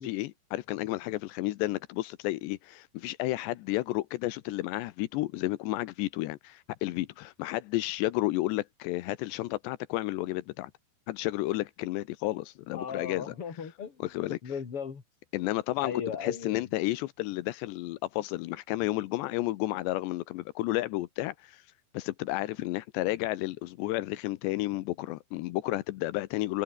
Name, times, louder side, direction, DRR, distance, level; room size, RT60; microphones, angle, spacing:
voice 1, 0.0-10.7 11.1-13.3 14.0-14.4 15.3-15.9 16.2-21.6 21.9-26.6, left 17 dB, 85° left, 3.1 m, -32 dB
voice 2, 12.7-15.0 15.8-16.7, left 7 dB, 35° left, 3.8 m, -37 dB
omnidirectional pair, 4.9 m